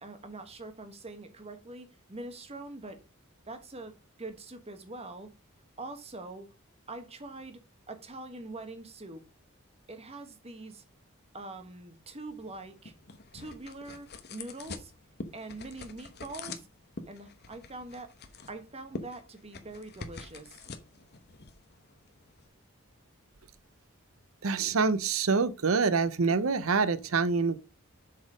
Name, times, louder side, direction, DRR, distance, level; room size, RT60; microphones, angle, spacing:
voice 1, 0.0-3.0 3.5-5.3 5.8-6.5 6.9-7.6 7.9-9.2 9.9-10.8 11.3-12.9 13.3-14.9 15.3-16.7 17.1-18.1 18.5-20.7, right 2 dB, 30° right, 1.2 m, -43 dB
sound 1, 12.3-22.5, left 3 dB, 50° left, 1.0 m, -46 dB
voice 2, 24.4-27.6, right 4 dB, 75° right, 0.7 m, -26 dB
7.6 x 4.2 x 5.0 m
head